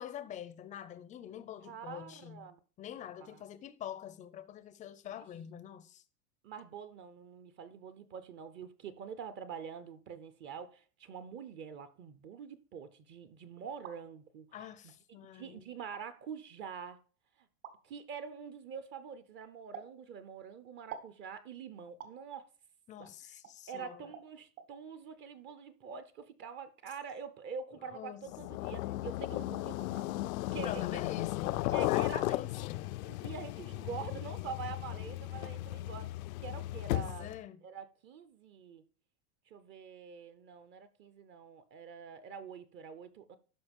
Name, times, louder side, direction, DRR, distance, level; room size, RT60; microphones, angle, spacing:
voice 1, 0.0-6.0 14.5-15.7 22.9-24.1 27.9-28.3 30.6-33.0 36.9-37.6, left 10 dB, 20° left, 0.5 m, -45 dB
voice 2, 1.6-2.6 3.2-3.4 6.4-14.5 15.3-17.0 17.8-22.5 23.0-23.4 23.7-30.1 30.5-30.9 31.7-32.2 33.0-37.3 37.6-38.8 39.5-43.4, right 6 dB, 30° right, 0.6 m, -45 dB
sound 1, 13.6-14.0 14.9-15.0 15.8-16.0 17.6-17.8 19.7-19.9 20.9-21.2 22.0-22.2 23.4-23.6 24.1-24.3 24.6-24.7, right 7 dB, 70° right, 1.9 m, -46 dB
sound 2, 28.3-37.4, left 17 dB, 75° left, 0.5 m, -35 dB
12.5 x 5.0 x 5.2 m
supercardioid pair, 150°, 42 cm